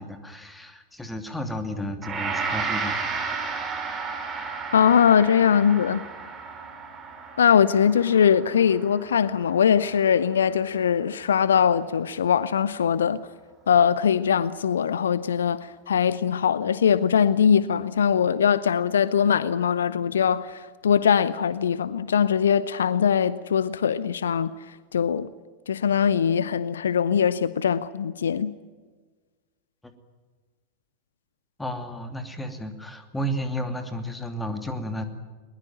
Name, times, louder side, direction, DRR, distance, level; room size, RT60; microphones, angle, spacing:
voice 1, 0.0-3.0 31.6-35.0, equal, 5° left, 2.8 m, -32 dB
Gong, 2.0-11.2, right 5 dB, 25° right, 5.0 m, -33 dB
voice 2, 4.7-6.0 7.4-13.2 13.7-25.3 25.7-28.5, left 7 dB, 65° left, 0.7 m, -21 dB
21.5 x 20.5 x 9.3 m
figure-of-eight pair, 90°, 0 cm